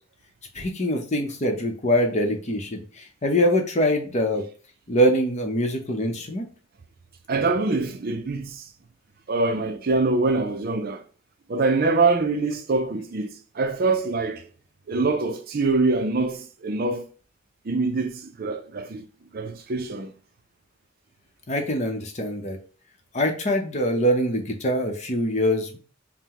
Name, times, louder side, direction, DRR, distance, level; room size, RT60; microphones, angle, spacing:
voice 1, 0.5-4.4 4.9-6.5 21.5-22.6 23.1-25.8, equal, 35° left, 0.7 m, -24 dB
voice 2, 7.3-8.6 9.3-11.0 11.5-13.3 13.5-14.4 14.9-17.1 17.6-19.0 19.3-20.1, right 3 dB, 50° right, 0.5 m, -24 dB
5.6 x 2.1 x 2.9 m
head